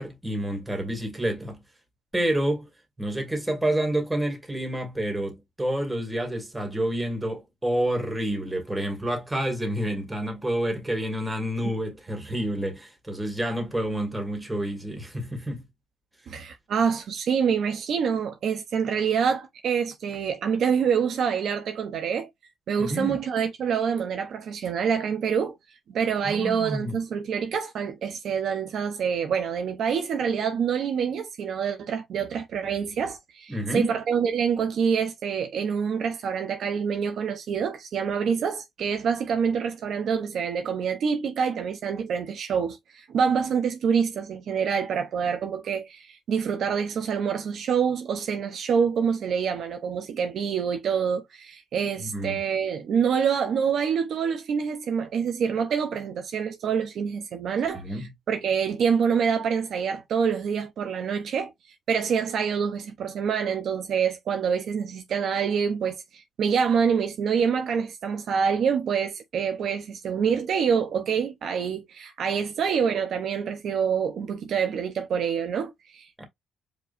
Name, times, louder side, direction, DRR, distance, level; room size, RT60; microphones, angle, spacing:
voice 1, 0.0-1.6 2.1-2.7 3.0-15.6 22.8-23.2 26.2-27.0 33.5-33.9 52.0-52.4 57.7-58.1 76.2-76.3, right 1 dB, 10° right, 2.3 m, -29 dB
voice 2, 16.3-22.3 22.7-25.6 25.9-61.5 61.9-76.2, right 7 dB, 65° right, 0.9 m, -26 dB
5.1 x 3.1 x 2.6 m
cardioid pair, 90°, 0 cm